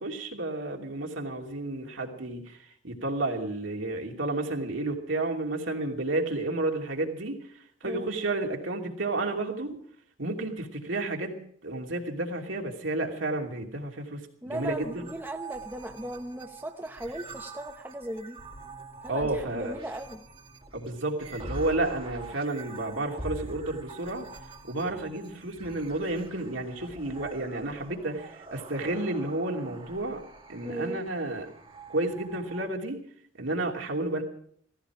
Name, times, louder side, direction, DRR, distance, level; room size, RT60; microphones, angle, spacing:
voice 1, 0.0-2.6 2.8-7.4 7.8-9.8 10.2-15.1 19.1-19.8 20.7-24.3 24.6-30.2 30.5-31.5 31.9-33.0 33.4-34.2, right 2 dB, 70° right, 1 dB, 2.8 m, -31 dB
voice 2, 14.4-18.4 19.0-20.2 30.6-31.0, right 1 dB, 10° right, 5 dB, 0.7 m, -37 dB
sound 1, 14.5-32.7, right 2 dB, 25° right, 1.9 m, -45 dB
16.5 x 15.5 x 4.9 m, 0.63 s
head